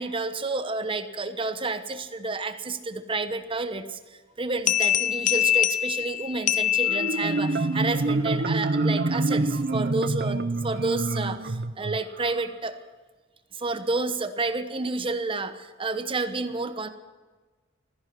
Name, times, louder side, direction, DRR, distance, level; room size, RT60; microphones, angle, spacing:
voice 1, 0.0-12.7 13.5-16.9, right 3 dB, 30° right, 9 dB, 1.0 m, -30 dB
sound 1, 4.7-7.6, left 11 dB, 40° left, 0.6 m, -24 dB
Marimba xylophone, 6.9-12.4, right 2 dB, 55° right, 0.7 m, -26 dB
16.0 x 14.5 x 6.0 m, 1.4 s
head